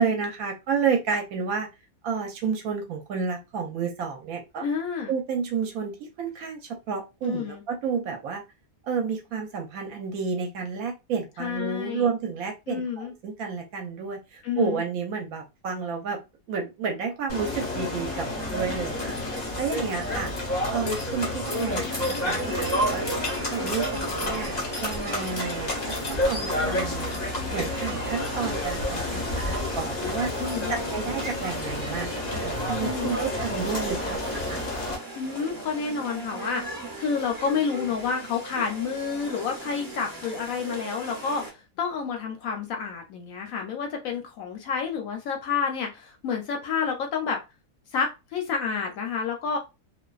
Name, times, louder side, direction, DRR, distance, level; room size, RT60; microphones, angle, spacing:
voice 1, 0.0-1.7 2.0-4.6 5.1-8.4 8.8-16.2 16.5-20.3 20.7-23.1 23.5-27.1 27.5-30.3 30.7-34.6, right 6 dB, 70° right, 3 dB, 0.9 m, -30 dB
voice 2, 4.6-5.1 7.2-7.6 11.4-12.1 12.7-13.1 14.4-14.8 30.4-30.7 32.8-33.2 35.2-36.7 37.0-47.4 47.9-49.6, left 6 dB, 70° left, 3 dB, 0.9 m, -29 dB
sound 1, 17.3-35.0, left 1 dB, 40° left, 0.7 m, -30 dB
sound 2, 22.2-41.5, right 3 dB, 30° right, 0.4 m, -38 dB
2.5 x 2.2 x 2.3 m, 0.26 s
omnidirectional pair, 1.7 m